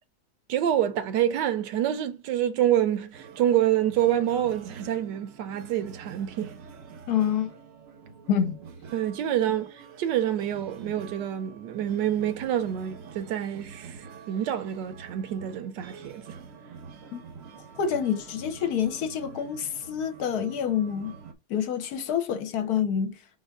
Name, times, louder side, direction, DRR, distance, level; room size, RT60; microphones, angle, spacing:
voice 1, 0.5-6.5 8.9-16.4, right 11 dB, 80° right, 1.3 m, -27 dB
sound 1, 3.1-21.3, right 6 dB, 60° right, 0.9 m, -46 dB
voice 2, 7.1-7.5 8.3-8.6 17.1-17.2 17.8-21.2 21.5-23.2, left 8 dB, 70° left, 1.1 m, -27 dB
4.1 x 3.5 x 3.4 m
omnidirectional pair, 1.9 m